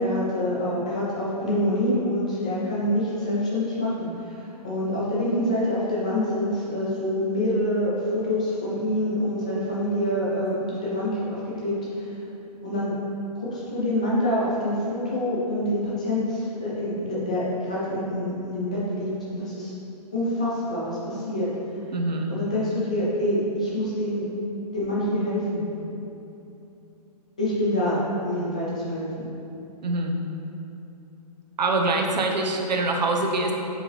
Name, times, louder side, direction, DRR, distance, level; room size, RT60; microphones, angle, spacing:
voice 1, 0.0-12.1 12.6-13.0 13.3-19.7 20.1-21.5 22.3-24.3 24.7-25.7 27.4-29.3, left 1 dB, 10° left, -8 dB, 0.4 m, -26 dB
voice 2, 21.9-22.3 29.8-30.2 31.6-33.5, right 2 dB, 85° right, 2 dB, 0.9 m, -24 dB
6.5 x 4.7 x 3.3 m, 2.8 s
hypercardioid pair, 175°, 21 cm